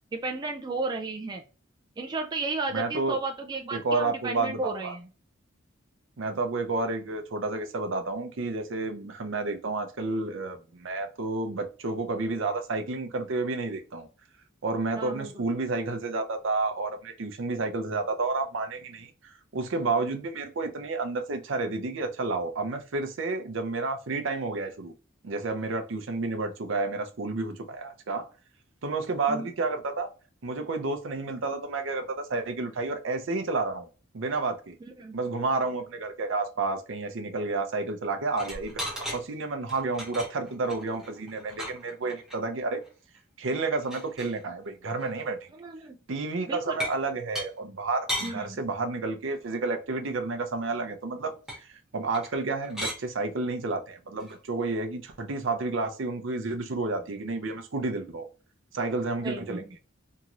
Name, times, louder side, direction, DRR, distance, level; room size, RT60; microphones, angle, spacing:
voice 1, 0.1-1.4 2.0-5.1 15.0-15.3 29.3-29.5 35.0-35.2 45.6-46.0 46.5-46.9 48.2-48.6 59.2-59.7, right 3 dB, 20° right, 0.3 m, -33 dB
voice 2, 2.7-3.2 3.7-4.9 6.2-14.1 14.6-19.1 19.5-24.9 25.2-28.3 28.8-30.1 30.4-33.9 34.1-34.8 35.1-42.8 43.4-45.4 46.1-51.7 51.9-58.3 58.7-59.6, right 3 dB, 65° right, 0.6 m, -30 dB
sound 1, 38.3-39.2 39.6-42.4 42.8-42.9 43.2-43.3 43.5-44.4 45.0-45.2 46.8-47.0 47.4-47.5 48.1-48.3 51.5-51.6 52.1-52.4 52.6-53.0 54.2-54.3, equal, 5° right, 0.8 m, -36 dB
3.0 x 2.7 x 2.4 m
head